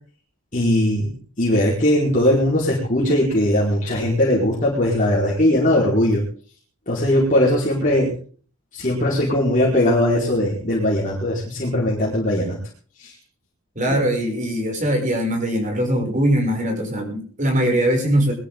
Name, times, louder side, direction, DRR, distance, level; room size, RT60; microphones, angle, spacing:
voice 1, 0.5-1.1 1.4-6.2 6.9-8.1 8.7-12.6 13.0-13.1, left 1 dB, 35° left, -4 dB, 4.6 m, -19 dB
voice 2, 13.7-18.3, right 1 dB, 35° right, 2 dB, 6.5 m, -21 dB
22.5 x 13.5 x 3.8 m, 0.43 s
head